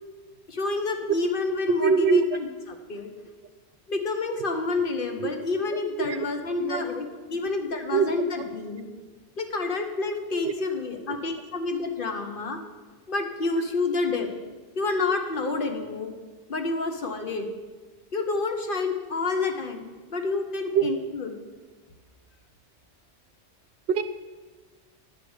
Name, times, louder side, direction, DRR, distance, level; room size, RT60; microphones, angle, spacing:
voice 1, 0.5-3.1 3.9-7.0 7.3-8.9 9.4-12.6 13.1-14.3 14.8-16.1 16.5-17.5 18.1-21.3, left 3 dB, 50° left, 5 dB, 1.1 m, -29 dB
voice 2, 1.8-2.2 5.2-5.3 6.6-6.8 7.9-8.1 20.7-20.9 23.9-24.1, right 6 dB, 70° right, 11 dB, 0.8 m, -21 dB
9.6 x 4.9 x 7.8 m, 1.4 s
omnidirectional pair, 1.2 m